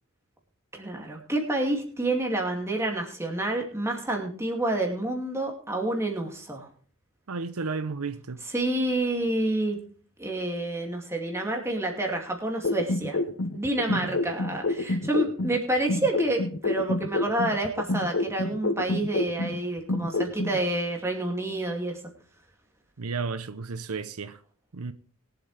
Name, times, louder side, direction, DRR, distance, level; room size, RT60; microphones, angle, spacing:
voice 1, 0.7-6.7 8.5-9.8 10.2-13.2 13.5-22.0, right 1 dB, 10° right, 2.5 m, -28 dB
voice 2, 7.3-8.5 13.9-14.2 23.0-24.4 24.7-24.9, right 4 dB, 85° right, 0.8 m, -33 dB
sound 1, 12.6-15.6 15.9-19.6 19.9-20.6, left 2 dB, 60° left, 0.9 m, -28 dB
22.0 x 7.8 x 3.4 m
head